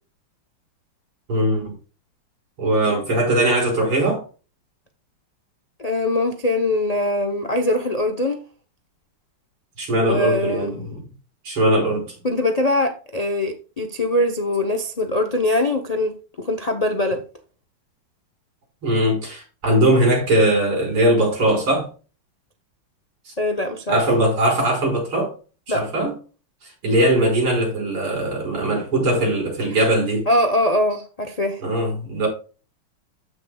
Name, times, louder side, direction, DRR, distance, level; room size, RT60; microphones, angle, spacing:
voice 1, 1.3-1.7 2.6-4.2 9.8-11.0 11.4-12.1 18.8-21.9 23.3-23.4 23.9-25.3 25.7-26.1 26.8-30.3 31.6-32.3, right 1 dB, 85° right, 6.2 m, -20 dB
voice 2, 5.8-8.4 10.0-10.9 12.2-17.2 23.4-24.0 25.7-25.8 30.3-31.6, left 1 dB, 45° left, 0.5 m, -22 dB
14.5 x 6.3 x 2.3 m
omnidirectional pair, 2.3 m